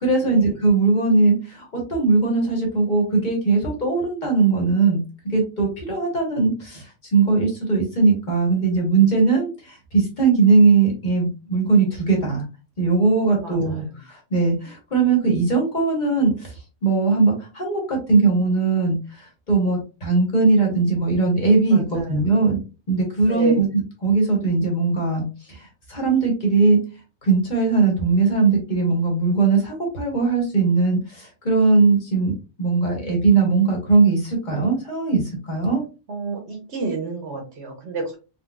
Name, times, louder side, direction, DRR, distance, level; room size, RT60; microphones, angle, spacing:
voice 1, 0.0-12.4 12.8-16.5 16.8-22.6 22.9-25.2 25.5-26.8 27.2-32.3 32.6-35.8, right 4 dB, 45° left, 0 dB, 1.2 m, -20 dB
voice 2, 13.4-13.9 21.7-22.3 23.3-23.7 36.1-38.2, right 4 dB, 70° right, 3 dB, 1.2 m, -30 dB
4.3 x 2.3 x 2.3 m, 0.31 s
omnidirectional pair, 1.2 m